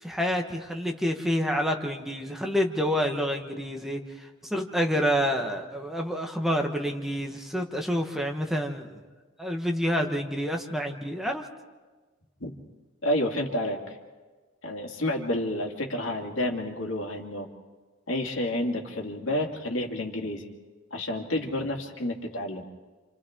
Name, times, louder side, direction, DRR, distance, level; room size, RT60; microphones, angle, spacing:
voice 1, 0.0-9.0 9.4-11.5, equal, ahead, 2 dB, 1.3 m, -28 dB
voice 2, 13.0-14.0 14.6-17.5 18.1-20.5 20.9-22.6, left 1 dB, 75° left, 1 dB, 2.4 m, -30 dB
29.5 x 27.5 x 3.7 m, 1.3 s
head